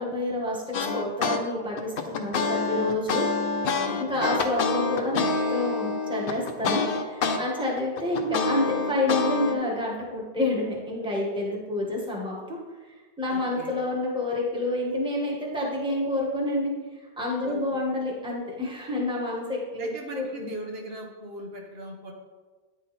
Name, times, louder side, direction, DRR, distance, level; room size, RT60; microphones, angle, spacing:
voice 1, 0.0-3.3 4.0-12.6 13.2-16.7 17.2-19.9 20.2-20.5, left 2 dB, 5° right, -4 dB, 1.3 m, -28 dB
sound 1, 0.7-1.4 1.8-7.4 7.8-9.5, left 4 dB, 65° left, 0.8 m, -26 dB
voice 2, 3.9-4.3 13.3-13.7 17.4-17.6 19.8-22.1, right 1 dB, 70° right, 1 dB, 1.2 m, -39 dB
9.2 x 3.9 x 4.1 m, 1.3 s
omnidirectional pair, 1.1 m